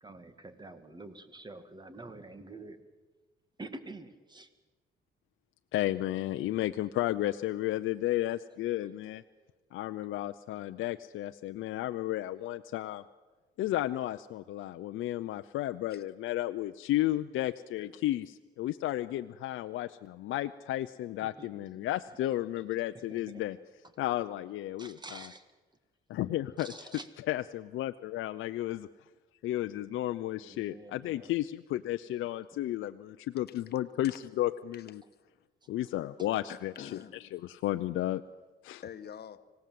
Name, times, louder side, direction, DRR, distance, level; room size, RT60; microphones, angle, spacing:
voice 1, 0.0-2.8 3.6-4.5 8.8-8.9 21.2-21.9 23.1-23.4 24.8-25.4 26.6-27.1 30.4-31.3 32.5-32.6 34.1-34.2 36.2-36.3, right 2 dB, 20° right, 10 dB, 2.2 m, -47 dB
voice 2, 5.7-9.2 9.7-13.0 13.6-23.6 24.0-25.2 26.1-26.7 27.3-28.9 29.4-35.0 35.7-36.9 37.3-38.2 38.6-38.8, left 14 dB, 80° left, 9 dB, 0.6 m, -33 dB
voice 3, 36.5-37.2 38.8-39.5, left 8 dB, 55° left, 9 dB, 1.3 m, -47 dB
25.5 x 17.5 x 7.7 m, 1.3 s
cardioid pair, 90°, 20 cm